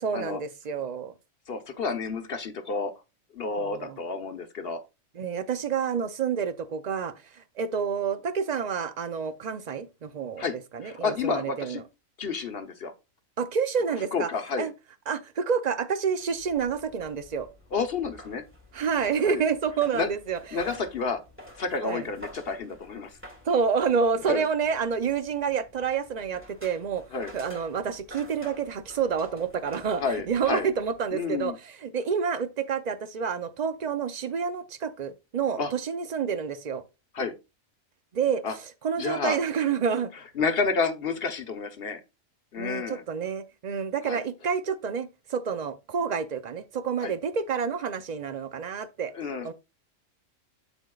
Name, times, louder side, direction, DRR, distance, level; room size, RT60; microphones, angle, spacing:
voice 1, 0.0-1.1 3.6-4.0 5.2-11.8 13.4-14.3 14.6-14.7 15.1-17.5 18.7-20.6 21.8-22.1 23.5-27.0 27.3-31.5 31.8-36.8 38.1-38.4 38.8-40.1 42.6-49.1 49.4-49.5, right 6 dB, 55° right, 0.4 m, -28 dB
voice 2, 1.5-2.9 3.3-4.8 10.4-11.8 12.2-12.9 14.1-14.7 17.7-18.4 19.2-19.4 19.9-20.1 20.5-21.2 21.6-23.2 24.3-24.4 27.1-27.3 30.0-30.7 31.1-31.6 35.6-35.7 37.1-37.3 38.4-38.6 39.0-39.4 40.4-42.0 42.5-43.0 44.0-44.2 47.0-47.1 49.1-49.5, left 4 dB, 50° left, 1.0 m, -30 dB
sound 1, 16.2-31.1, left 1 dB, 10° right, 1.9 m, -50 dB
12.5 x 4.4 x 2.3 m
omnidirectional pair, 1.4 m